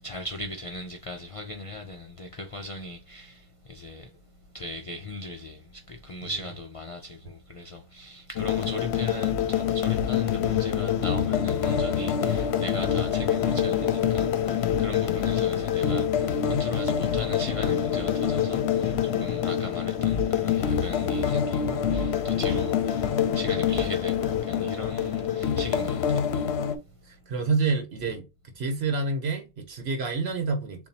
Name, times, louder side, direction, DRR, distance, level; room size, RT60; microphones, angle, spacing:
voice 1, 0.0-4.1 4.5-26.3, left 1 dB, 40° left, 0.5 m, -38 dB
sound 1, 8.4-26.8, left 8 dB, 80° left, 0.9 m, -26 dB
voice 2, 27.1-28.3 28.6-30.9, right 4 dB, 75° right, 1.1 m, -28 dB
7.0 x 2.6 x 2.8 m
omnidirectional pair, 1.1 m